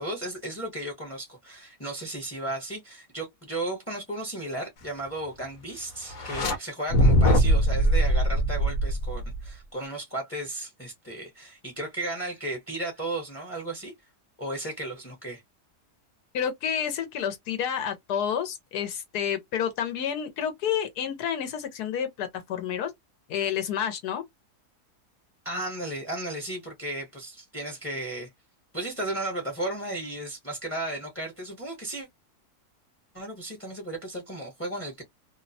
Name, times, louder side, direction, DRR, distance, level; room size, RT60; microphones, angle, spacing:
voice 1, 0.0-13.9 14.4-15.4 25.4-28.3 28.7-32.1 33.1-35.0, right 1 dB, 15° left, 0.5 m, -34 dB
sound 1, 6.1-6.6 6.9-9.5, equal, 70° left, 1.1 m, -21 dB
voice 2, 16.3-22.9 23.3-24.2, left 8 dB, 85° left, 1.2 m, -29 dB
3.0 x 2.0 x 2.6 m
omnidirectional pair, 1.6 m